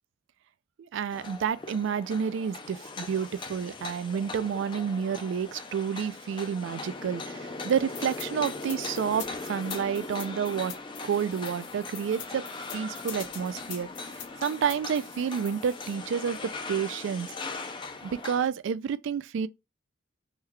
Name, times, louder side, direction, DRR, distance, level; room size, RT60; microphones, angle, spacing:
voice 1, 0.8-10.7 11.0-12.5 12.7-14.1 14.4-16.4 16.7-17.3 18.0-19.5, right 7 dB, 65° right, 0.3 m, -30 dB
sound 1, 1.1-18.5, left 3 dB, 25° left, 0.4 m, -40 dB
sound 2, 7.9-15.9, left 8 dB, 65° left, 0.7 m, -44 dB
3.7 x 2.2 x 3.0 m
head